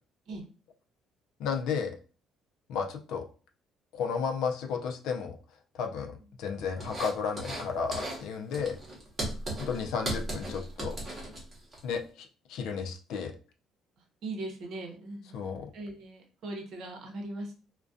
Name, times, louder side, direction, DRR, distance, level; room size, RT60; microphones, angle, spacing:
voice 1, 1.4-2.0 2.7-3.2 3.9-5.4 5.7-8.8 9.6-11.0 11.8-13.3 15.3-15.7, left 6 dB, 80° left, 5 dB, 0.4 m, -33 dB
sound 1, 6.8-7.6 7.9-8.2 8.5-11.8, right 1 dB, 25° right, 0.8 m, -36 dB
voice 2, 14.0-17.5, right 2 dB, 65° right, 2 dB, 0.8 m, -40 dB
2.3 x 2.2 x 2.5 m, 0.36 s
cardioid pair, 140°, 0 cm